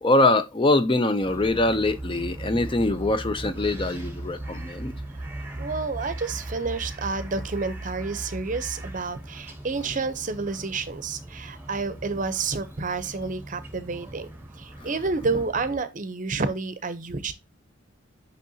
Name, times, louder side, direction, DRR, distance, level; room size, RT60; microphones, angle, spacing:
voice 1, 0.0-4.9 14.8-14.9, left 2 dB, 25° left, 0.5 m, -23 dB
sound 1, 1.2-15.8, right 1 dB, 10° right, 1.0 m, -41 dB
sound 2, 1.9-8.9, right 2 dB, 75° left, 4.5 m, -39 dB
voice 2, 5.6-14.3 14.6-17.3, right 4 dB, 40° right, 0.7 m, -30 dB
6.4 x 5.5 x 2.7 m
head